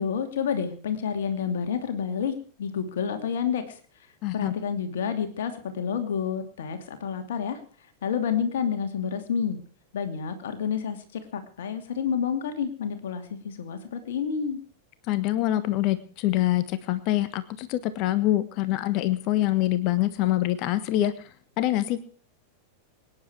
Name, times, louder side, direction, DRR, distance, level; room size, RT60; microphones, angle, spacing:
voice 1, 0.0-2.3 2.6-3.6 4.3-7.6 8.0-9.6 9.9-11.0 11.3-14.6, left 7 dB, 60° left, 7 dB, 2.7 m, -29 dB
voice 2, 4.2-4.6 15.1-22.0, left 15 dB, 40° left, 14 dB, 1.3 m, -25 dB
24.0 x 10.0 x 4.7 m, 0.42 s
figure-of-eight pair, 90°, 0 cm